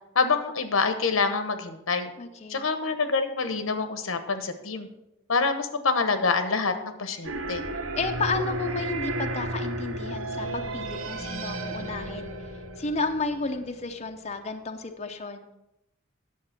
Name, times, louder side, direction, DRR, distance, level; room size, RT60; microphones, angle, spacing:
voice 1, 0.1-2.1 2.5-4.9 5.3-7.6, left 4 dB, 90° left, 8 dB, 1.1 m, -26 dB
voice 2, 2.2-2.7 8.0-12.3 12.8-15.5, left 3 dB, 35° left, 5 dB, 0.7 m, -32 dB
sound 1, 7.2-14.0, right 1 dB, 85° right, 1.1 m, -33 dB
9.6 x 7.2 x 5.9 m, 0.88 s
head